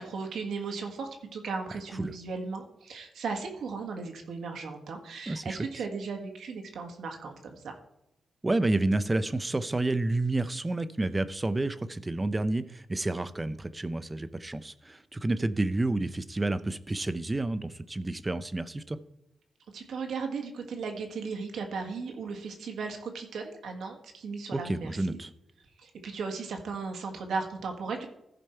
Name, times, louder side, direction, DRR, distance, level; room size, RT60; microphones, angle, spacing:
voice 1, 0.0-7.7 19.7-25.2 25.8-28.1, right 4 dB, 85° right, 3 dB, 1.6 m, -36 dB
voice 2, 5.3-5.6 8.4-19.0 24.5-25.3, right 2 dB, 20° right, 13 dB, 0.5 m, -30 dB
14.5 x 5.2 x 4.4 m, 0.85 s
cardioid pair, 90°, 0 cm